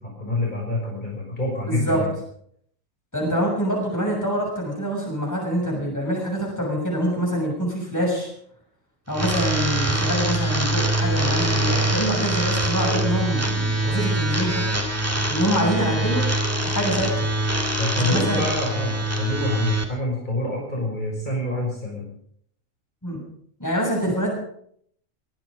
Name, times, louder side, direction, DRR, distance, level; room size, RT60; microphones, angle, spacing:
voice 1, 0.2-2.1 17.8-22.1, left 1 dB, 35° left, -4 dB, 6.1 m, -26 dB
voice 2, 1.7-2.0 3.1-8.3 9.1-14.8 15.3-16.2 16.6-17.3 18.0-18.5 23.0-23.2 23.6-24.3, equal, 10° left, -2 dB, 6.9 m, -25 dB
sound 1, 9.1-19.8, right 1 dB, 10° right, 2.1 m, -24 dB
22.5 x 11.0 x 5.3 m, 0.66 s
omnidirectional pair, 1.4 m